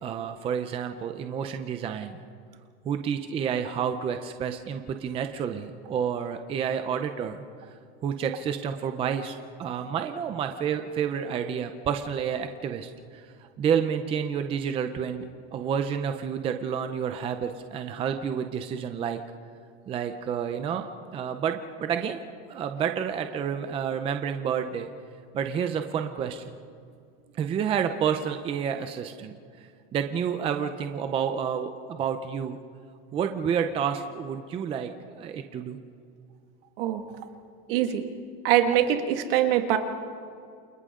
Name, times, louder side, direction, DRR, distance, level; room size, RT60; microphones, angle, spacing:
voice 1, 0.0-2.2 2.8-7.4 8.0-15.2 15.5-19.2 19.9-20.9 21.1-22.2 22.5-24.9 25.3-26.4 27.4-32.6 33.1-35.8, right 7 dB, 15° right, 7 dB, 0.6 m, -29 dB
voice 2, 37.7-38.0 38.4-39.8, right 11 dB, 60° right, 5 dB, 2.1 m, -23 dB
29.0 x 27.0 x 3.8 m, 2.3 s
supercardioid pair, 170°, 32 cm